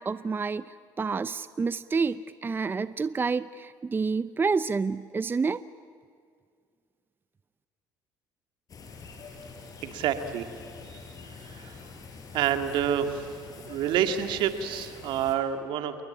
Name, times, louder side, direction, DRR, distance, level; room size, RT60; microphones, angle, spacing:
voice 1, 0.0-5.6, right 4 dB, 25° right, 16 dB, 0.6 m, -29 dB
sound 1, 8.7-15.4, left 4 dB, 45° left, 5.5 m, -45 dB
voice 2, 9.8-10.5 10.9-11.0 11.4-11.8 12.3-13.3 13.6-16.0, right 9 dB, 70° right, 8 dB, 2.2 m, -28 dB
28.5 x 21.0 x 8.8 m, 2.1 s
supercardioid pair, 80°, 9 cm